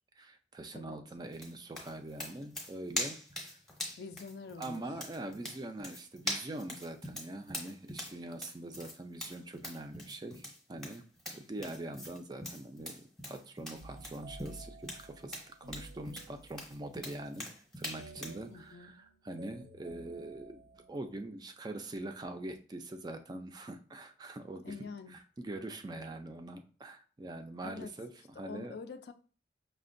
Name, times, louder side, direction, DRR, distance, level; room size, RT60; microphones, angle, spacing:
voice 1, 0.2-3.6 4.6-10.4 10.7-11.1 11.3-17.5 17.8-20.6 20.9-28.8, right 2 dB, 25° right, 0.3 m, -43 dB
sound 1, 1.3-18.4, left 1 dB, ahead, 0.7 m, -43 dB
voice 2, 4.0-4.8 18.5-19.0 24.6-25.2 27.6-27.9 28.4-29.1, left 4 dB, 60° left, 0.3 m, -45 dB
sound 2, 13.8-16.7 18.0-21.3, right 2 dB, 90° right, 0.6 m, -52 dB
5.6 x 2.1 x 2.5 m
head